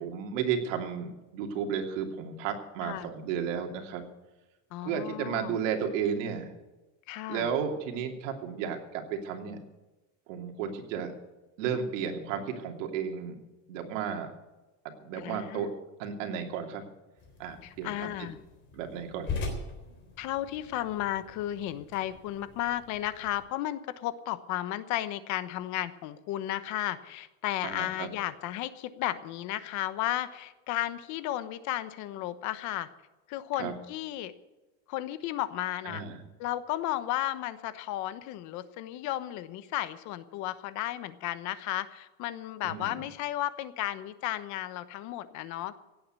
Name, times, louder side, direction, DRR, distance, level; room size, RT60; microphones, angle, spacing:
voice 1, 0.0-4.0 4.8-6.5 7.3-9.6 10.3-11.1 11.6-13.4 13.7-14.3 15.0-15.7 16.0-16.8 17.4-18.3 18.7-19.3 27.6-28.1 33.6-33.7 35.8-36.2 42.6-43.0, right 7 dB, 80° right, 3 dB, 3.0 m, -33 dB
voice 2, 4.7-5.6 7.1-7.5 15.1-15.6 17.6-18.4 20.2-32.9 33.3-34.3 34.9-36.0 36.4-45.7, left 14 dB, 50° left, 13 dB, 1.1 m, -34 dB
sound 1, 17.2-23.4, left 3 dB, 30° left, 3.8 m, -42 dB
17.0 x 8.7 x 8.2 m, 1.1 s
cardioid pair, 160°, 38 cm